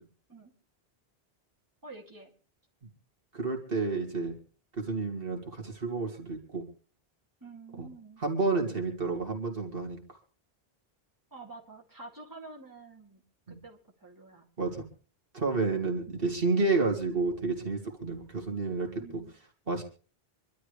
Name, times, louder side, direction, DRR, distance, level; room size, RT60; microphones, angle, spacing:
voice 1, 1.8-2.3 7.4-8.2 11.3-13.2 13.6-14.5 19.0-19.3, right 3 dB, 20° right, -2 dB, 2.8 m, -48 dB
voice 2, 3.3-4.3 4.8-6.6 7.8-7.9 8.2-10.2 13.5-13.6 14.6-14.8 15.3-19.2 19.7-19.8, right 3 dB, 65° right, 1 dB, 2.7 m, -30 dB
26.0 x 12.0 x 3.3 m, 0.38 s
omnidirectional pair, 1.0 m